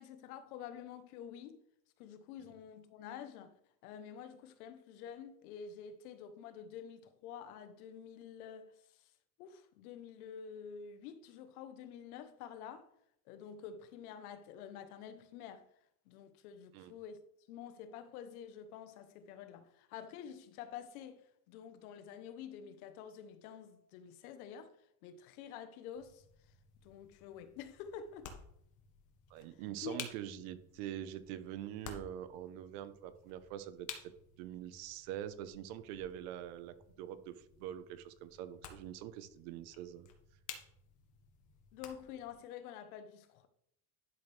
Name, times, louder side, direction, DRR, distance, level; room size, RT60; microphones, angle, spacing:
voice 1, 0.0-1.6 2.0-3.6 3.8-9.1 9.4-12.9 13.3-15.7 16.1-17.2 17.5-24.7 25.0-26.2 26.8-28.4 29.8-30.0 41.7-43.5, left 8 dB, 85° left, 1.1 m, -49 dB
sound 1, 25.9-42.3, left 7 dB, 45° left, 1.6 m, -54 dB
voice 2, 29.3-33.9 34.4-40.1, right 11 dB, 75° right, 1.1 m, -44 dB
11.5 x 6.2 x 3.4 m
supercardioid pair, 135°, 43 cm